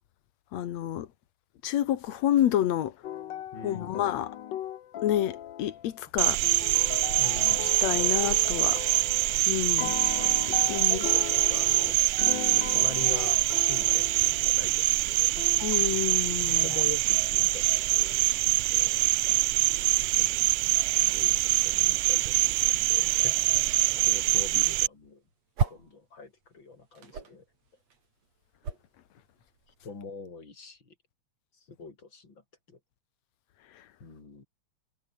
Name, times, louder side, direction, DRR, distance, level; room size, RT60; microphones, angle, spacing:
voice 1, 0.5-1.1 1.6-2.9 3.6-4.4 5.0-6.4 7.8-8.8 9.5-10.0 10.7-11.0 15.6-16.7, left 11 dB, 70° left, 2.4 m, -28 dB
sound 1, 3.0-6.0 6.4-9.4 9.8-14.7 15.4-15.8, left 11 dB, 85° left, 1.0 m, -38 dB
voice 2, 3.5-4.0 7.2-7.8 10.1-12.0 12.5-15.3 16.5-18.3 18.7-19.1 20.2-23.7 24.0-25.2 25.7-27.4 29.8-30.9 31.7-32.4 32.7-32.8 34.0-34.5, left 4 dB, 40° left, 4.9 m, -43 dB
Cricket, 6.2-24.9, right 19 dB, 80° right, 1.5 m, -24 dB
sound 2, 24.9-26.0 26.3-30.0, right 5 dB, 60° right, 4.9 m, -35 dB
omnidirectional pair, 3.4 m